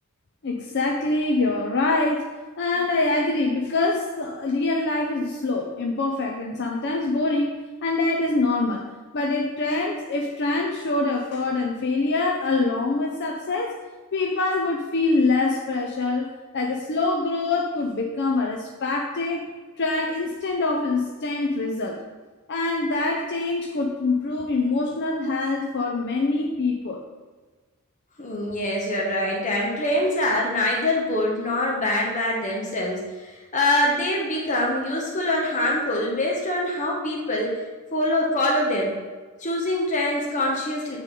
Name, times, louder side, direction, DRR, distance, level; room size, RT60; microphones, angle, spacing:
voice 1, 0.4-2.2 2.6-8.9 9.1-13.8 14.1-16.3 16.5-19.4 19.8-22.0 22.5-27.1, left 3 dB, 50° left, 1 dB, 0.6 m, -24 dB
voice 2, 28.2-37.6 37.9-39.0 39.4-41.0, left 1 dB, 35° left, -2 dB, 1.1 m, -24 dB
8.2 x 4.0 x 5.2 m, 1.3 s
head